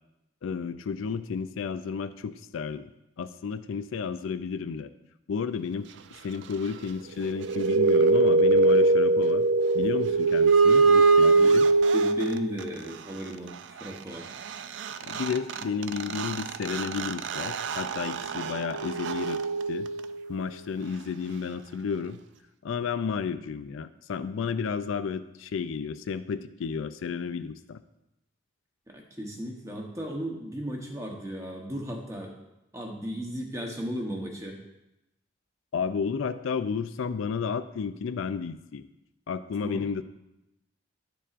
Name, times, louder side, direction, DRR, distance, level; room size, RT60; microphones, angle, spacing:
voice 1, 0.4-2.9 3.2-4.9 5.3-5.9 6.2-9.5 9.7-11.7 15.1-19.4 19.7-19.9 20.3-22.2 22.6-27.8 35.7-38.8 39.3-40.0, left 6 dB, 85° left, 12 dB, 0.4 m, -32 dB
sound 1, 7.2-12.6 14.5-14.6 14.8-20.3, right 3 dB, 65° right, 0.3 m, -22 dB
voice 2, 11.2-11.5 11.9-14.3 28.9-32.3 32.7-34.6 39.6-39.9, equal, 15° right, 1 dB, 0.9 m, -35 dB
10.0 x 6.9 x 2.5 m, 0.91 s
head